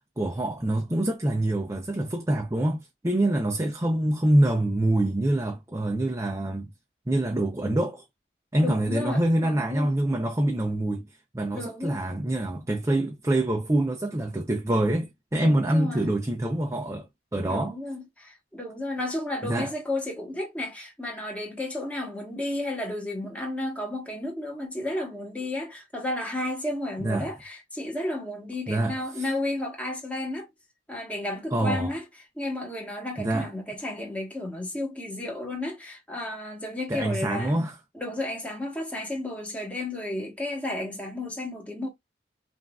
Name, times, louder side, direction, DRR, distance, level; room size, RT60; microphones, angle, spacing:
voice 1, 0.2-6.7 7.1-8.0 8.5-11.1 11.3-17.8 19.4-19.7 27.0-27.3 28.7-29.3 31.5-31.9 33.2-33.5 36.9-37.8, right 1 dB, 15° right, 0.5 m, -25 dB
voice 2, 8.6-9.9 11.5-12.0 15.4-16.0 17.5-30.5 30.9-32.0 32.4-37.6 37.9-41.9, left 1 dB, 10° left, 1.2 m, -32 dB
5.6 x 2.6 x 2.3 m
head